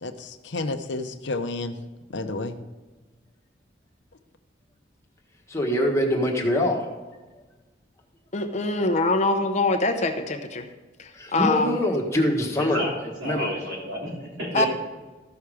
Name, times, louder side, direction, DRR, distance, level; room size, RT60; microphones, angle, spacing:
voice 1, 0.0-1.8 2.1-2.5, left 2 dB, 75° left, 8 dB, 0.7 m, -31 dB
voice 2, 5.5-6.9 11.1-12.8 13.2-13.5 14.5-14.7, left 1 dB, 15° left, -1 dB, 1.5 m, -24 dB
voice 3, 8.3-10.7 11.0-11.8 14.5-14.7, left 2 dB, 40° left, 6 dB, 0.7 m, -24 dB
voice 4, 12.6-14.7, left 1 dB, 60° right, -3 dB, 3.1 m, -32 dB
14.0 x 5.8 x 4.9 m, 1.2 s
head